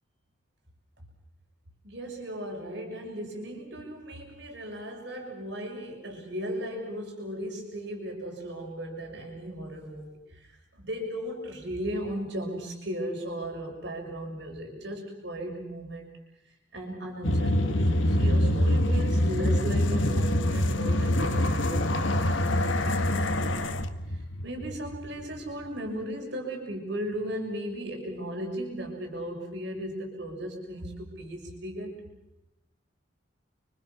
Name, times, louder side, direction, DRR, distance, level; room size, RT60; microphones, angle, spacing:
voice 1, 1.8-16.1 16.7-23.7 24.1-32.0, right 1 dB, 65° right, 1 dB, 6.3 m, -36 dB
sound 1, 17.2-25.4, left 1 dB, 90° left, 1.5 m, -25 dB
30.0 x 25.0 x 6.0 m, 0.88 s
head